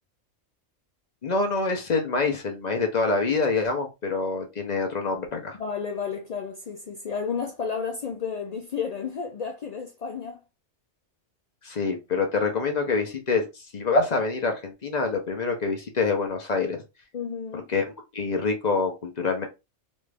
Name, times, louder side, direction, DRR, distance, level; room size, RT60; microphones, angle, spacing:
voice 1, 1.2-5.6 11.6-16.8 17.7-17.9 18.1-19.5, left 4 dB, 40° left, 0.7 m, -26 dB
voice 2, 5.5-10.4 17.1-17.7, left 6 dB, 85° left, 0.3 m, -32 dB
3.1 x 2.5 x 3.2 m
omnidirectional pair, 1.3 m